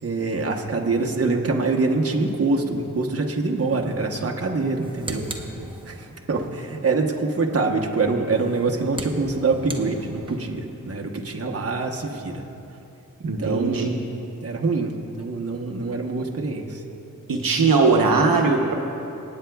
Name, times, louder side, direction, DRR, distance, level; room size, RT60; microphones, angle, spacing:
voice 1, 0.0-5.5 5.8-12.4 13.2-13.9 14.4-16.8, right 3 dB, 45° right, 1 dB, 1.0 m, -25 dB
sound 1, 4.6-6.3 8.2-10.6, right 1 dB, 15° right, 0.8 m, -38 dB
voice 2, 13.2-13.9 17.3-18.7, right 4 dB, 80° right, 1 dB, 0.9 m, -19 dB
26.5 x 8.9 x 2.3 m, 2.9 s
wide cardioid pair, 100°, 34 cm